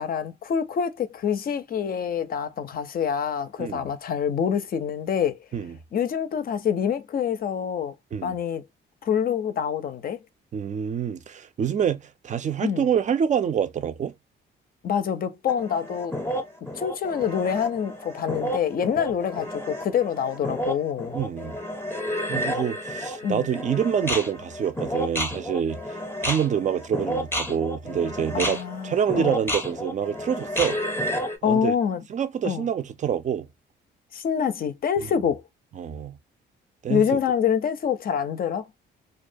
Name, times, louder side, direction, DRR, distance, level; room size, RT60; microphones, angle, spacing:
voice 1, 0.0-5.4 5.9-7.9 8.2-8.6 9.0-10.2 12.6-12.9 14.8-16.2 16.8-21.2 23.2-23.5 28.3-29.4 31.4-32.0 32.4-32.7 34.1-35.4 36.9-38.7, left 8 dB, 50° left, 0.5 m, -26 dB
voice 2, 10.5-14.1 21.1-21.6 22.3-25.8 26.2-28.6 28.8-30.8 31.4-31.7 32.1-33.5 35.8-36.2 36.8-37.2, right 8 dB, 40° right, 0.4 m, -26 dB
sound 1, 15.5-31.4, equal, 10° left, 0.7 m, -31 dB
2.3 x 2.1 x 2.5 m
cardioid pair, 90°, 20 cm